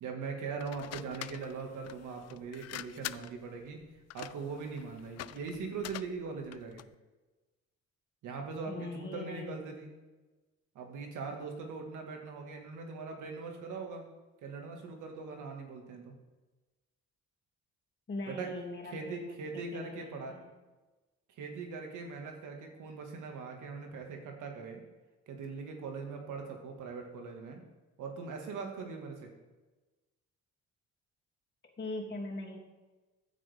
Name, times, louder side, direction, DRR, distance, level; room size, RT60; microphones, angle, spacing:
voice 1, 0.0-3.8 4.1-6.8 8.2-9.9 10.8-14.0 14.4-16.1 18.3-18.5 18.8-20.4 21.4-24.8 25.3-27.6 28.0-29.3, right 4 dB, 80° right, 2 dB, 2.0 m, -41 dB
sound 1, 0.6-6.9, left 13 dB, 60° left, 0.4 m, -46 dB
voice 2, 8.7-9.5 18.1-20.5 31.8-32.6, left 2 dB, 35° left, -1 dB, 2.8 m, -41 dB
15.0 x 8.5 x 3.6 m, 1.2 s
cardioid pair, 90°, 30 cm